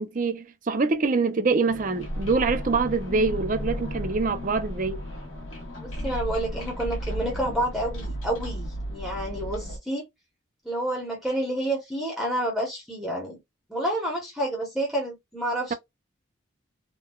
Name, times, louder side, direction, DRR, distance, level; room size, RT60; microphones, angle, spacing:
voice 1, 0.0-5.0, right 4 dB, 40° right, 0.5 m, -25 dB
sound 1, 1.7-9.8, equal, 70° left, 1.1 m, -34 dB
voice 2, 5.8-10.0 10.6-13.4 13.7-15.7, right 1 dB, ahead, 0.8 m, -29 dB
3.6 x 2.2 x 2.2 m
head